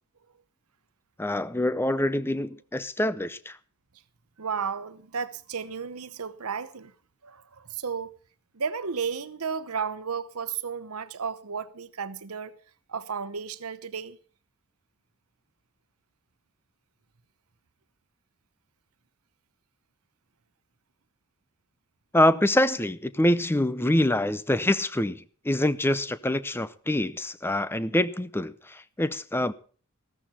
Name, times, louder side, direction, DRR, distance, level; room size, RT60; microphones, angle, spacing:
voice 1, 1.2-3.6 22.1-29.5, left 1 dB, 10° left, 0.6 m, -25 dB
voice 2, 4.4-6.9 7.2-8.1 8.5-12.5 12.9-14.2, right 6 dB, 85° right, 0.9 m, -33 dB
14.5 x 14.0 x 4.3 m
head